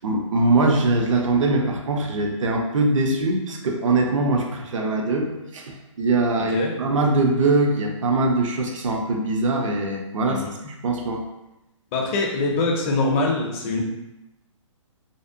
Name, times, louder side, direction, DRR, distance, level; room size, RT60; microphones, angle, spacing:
voice 1, 0.0-10.4 10.8-11.2, right 2 dB, 75° right, 1 dB, 0.5 m, -22 dB
voice 2, 11.9-13.8, left 3 dB, 25° left, 0 dB, 0.4 m, -23 dB
2.7 x 2.1 x 2.5 m, 0.95 s
hypercardioid pair, 135°, 17 cm